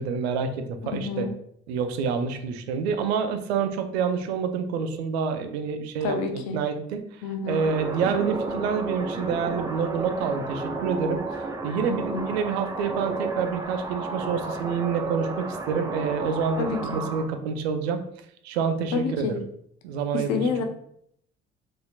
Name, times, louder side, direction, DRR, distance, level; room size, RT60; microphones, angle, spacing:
voice 1, 0.0-1.3 1.7-7.0 7.5-11.2 11.6-18.0 18.4-19.4 19.8-20.5, right 6 dB, 70° right, 7 dB, 0.5 m, -27 dB
voice 2, 0.9-1.3 6.0-6.6 7.2-7.6 11.8-12.3 16.6-17.0 18.9-19.4 20.1-20.6, left 5 dB, 55° left, 6 dB, 0.7 m, -28 dB
sound 1, 7.5-17.3, right 3 dB, 10° right, 0.4 m, -32 dB
4.1 x 2.8 x 2.4 m, 0.68 s
figure-of-eight pair, 50°, 33 cm